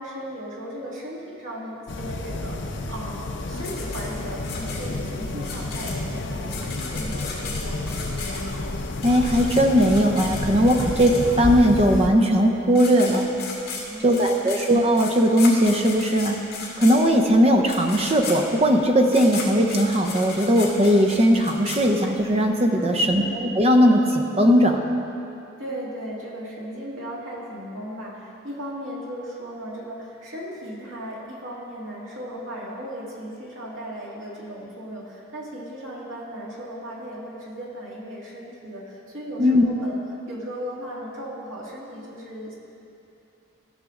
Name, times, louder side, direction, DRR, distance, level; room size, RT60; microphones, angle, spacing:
voice 1, 0.0-7.9 13.7-14.5 22.7-23.3 25.6-42.6, equal, 90° right, -4 dB, 2.1 m, -36 dB
sound 1, 1.9-12.1, left 2 dB, 65° left, 0.7 m, -30 dB
sound 2, 3.6-11.6 12.4-12.5 12.7-22.4, left 5 dB, 50° left, 2.3 m, -36 dB
voice 2, 9.0-13.3 14.0-16.4 16.8-24.8 39.4-39.6, equal, 30° right, 3 dB, 0.7 m, -19 dB
15.5 x 6.6 x 3.8 m, 2.8 s
head